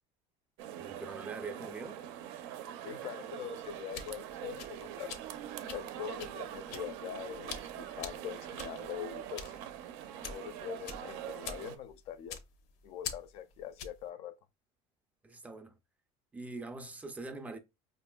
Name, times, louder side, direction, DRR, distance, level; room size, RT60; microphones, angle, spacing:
sound 1, 0.6-11.8, right 11 dB, 80° right, 0.5 m, -43 dB
voice 1, 0.8-2.0 15.2-15.8 16.3-17.6, right 3 dB, 10° right, 0.4 m, -43 dB
voice 2, 2.8-5.2 5.7-9.5 10.3-12.4 12.8-14.4, left 9 dB, 50° left, 0.4 m, -43 dB
sound 2, 3.6-14.1, left 7 dB, 85° left, 0.7 m, -46 dB
5.1 x 2.5 x 2.2 m
cardioid pair, 155°, 13 cm